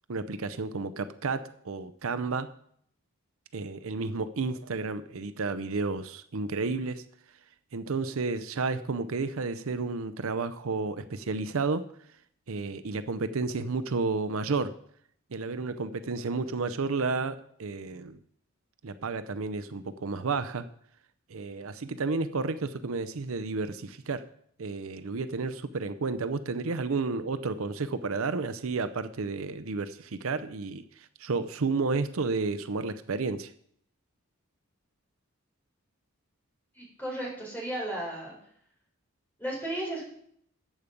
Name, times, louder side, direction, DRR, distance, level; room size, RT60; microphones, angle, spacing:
voice 1, 0.1-2.5 3.5-7.0 7.7-11.8 12.5-14.7 15.3-18.2 18.8-20.6 21.3-24.2 24.6-33.5, right 4 dB, 70° right, 12 dB, 0.6 m, -31 dB
voice 2, 36.7-38.3 39.4-40.0, right 1 dB, 10° left, -3 dB, 4.4 m, -34 dB
13.5 x 8.3 x 5.2 m, 0.66 s
head